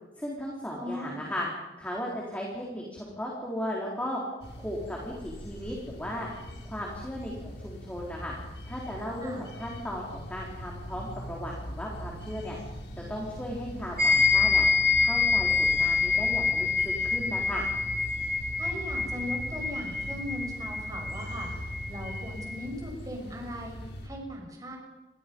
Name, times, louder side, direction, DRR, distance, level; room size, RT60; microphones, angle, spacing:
voice 1, 0.2-1.5 1.8-4.2 4.6-6.3 6.6-8.4 8.7-12.6 13.0-14.7 15.0-17.6, equal, 10° left, -3 dB, 4.1 m, -36 dB
voice 2, 0.8-1.2 9.2-9.4 18.6-23.8 24.0-24.8, left 1 dB, 20° right, 0 dB, 6.3 m, -38 dB
sound 1, 4.4-24.1, equal, 80° left, 6.4 m, -41 dB
sound 2, 14.0-22.7, left 4 dB, 50° right, 5.9 m, -27 dB
29.5 x 22.5 x 5.5 m, 1.1 s
head